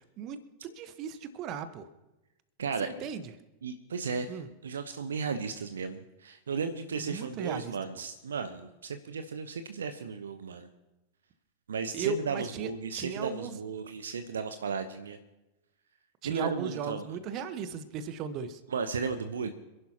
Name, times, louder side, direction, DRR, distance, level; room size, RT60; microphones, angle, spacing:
voice 1, 0.0-1.9 2.8-3.2 4.3-4.5 7.0-7.7 11.9-13.5 16.2-18.6, right 6 dB, 40° right, 12 dB, 1.1 m, -37 dB
voice 2, 2.6-3.1 3.6-10.7 11.7-15.2 16.2-17.1 18.7-19.5, right 5 dB, 70° right, 9 dB, 0.8 m, -35 dB
27.0 x 11.0 x 2.9 m, 1.0 s
figure-of-eight pair, 90°, 0 cm